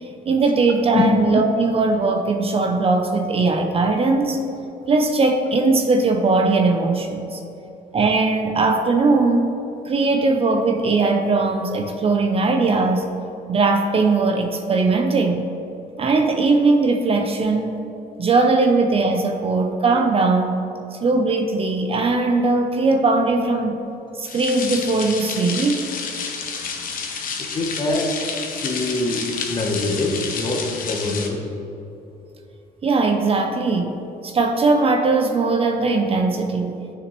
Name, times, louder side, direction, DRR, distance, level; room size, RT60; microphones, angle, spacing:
voice 1, 0.3-4.4 4.9-7.4 7.9-9.5 9.9-13.1 13.5-15.5 16.0-17.8 18.2-20.5 20.9-23.8 24.2-25.8 32.8-34.0 34.2-36.8, right 3 dB, 35° right, 5 dB, 0.6 m, -19 dB
sound 1, 24.3-31.3, left 5 dB, 55° left, 0.9 m, -30 dB
voice 2, 27.5-28.1 28.6-31.5, left 2 dB, 25° left, 2 dB, 1.0 m, -24 dB
9.5 x 6.0 x 3.1 m, 2.9 s
cardioid pair, 110°, 17 cm